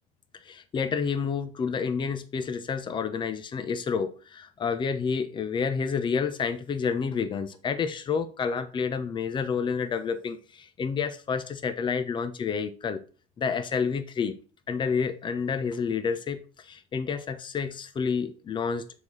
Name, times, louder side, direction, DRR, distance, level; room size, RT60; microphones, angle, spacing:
voice 1, 0.4-13.0 13.4-14.3 14.7-19.0, left 6 dB, 25° left, 1.0 m, -29 dB
6.9 x 5.0 x 4.1 m
supercardioid pair, 120°, 17 cm